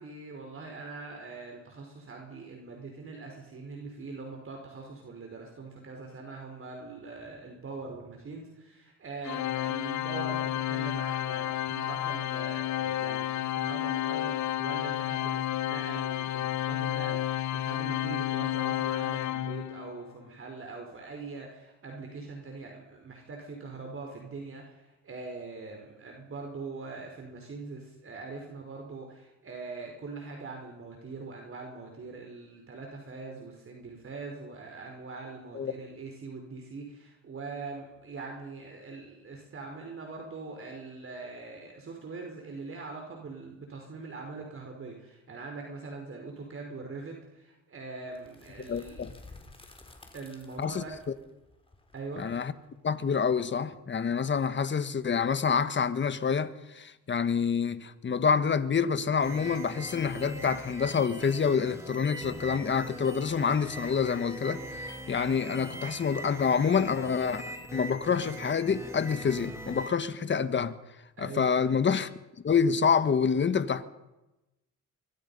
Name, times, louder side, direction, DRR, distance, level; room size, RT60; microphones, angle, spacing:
voice 1, 0.0-49.0 50.1-50.9 51.9-52.3 71.2-71.8, right 3 dB, 45° right, 4.7 m, -42 dB
Organ, 9.2-20.0, left 13 dB, 70° left, 1.1 m, -31 dB
sound 1, 48.1-53.9, left 2 dB, 20° left, 3.7 m, -53 dB
voice 2, 48.7-49.1 50.6-50.8 52.2-52.5 52.8-67.4 67.7-70.8 71.2-72.1 72.4-73.8, left 6 dB, 40° left, 1.6 m, -27 dB
sound 2, 59.2-69.9, right 1 dB, 10° right, 4.4 m, -42 dB
24.0 x 22.0 x 5.6 m
cardioid pair, 90°, 30 cm